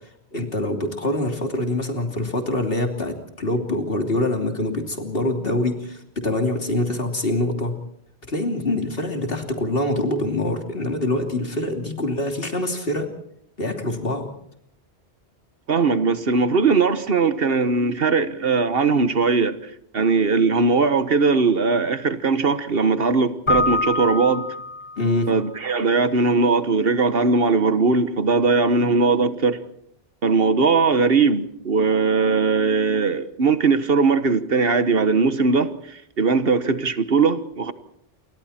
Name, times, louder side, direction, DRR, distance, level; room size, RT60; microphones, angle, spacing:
voice 1, 0.3-7.8 8.3-13.1 13.6-14.3 25.0-25.3, left 1 dB, 60° left, 4 dB, 3.3 m, -25 dB
voice 2, 15.7-19.6 19.9-24.5 25.3-29.6 30.2-37.7, right 4 dB, 60° right, 12 dB, 1.4 m, -19 dB
Keyboard (musical), 23.5-25.3, left 3 dB, 30° left, 1.0 m, -25 dB
28.5 x 23.5 x 4.3 m, 0.72 s
omnidirectional pair, 1.1 m